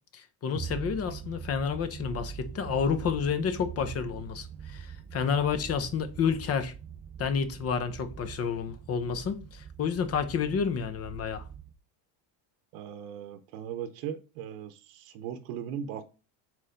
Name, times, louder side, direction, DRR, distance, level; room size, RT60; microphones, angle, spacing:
voice 1, 0.1-6.7 7.2-11.5, left 6 dB, 35° left, 0.8 m, -30 dB
sound 1, 0.5-11.7, right 7 dB, 20° right, 0.3 m, -43 dB
voice 2, 12.7-16.0, right 9 dB, 85° right, 0.9 m, -38 dB
4.6 x 4.3 x 5.0 m
cardioid pair, 130°, 44 cm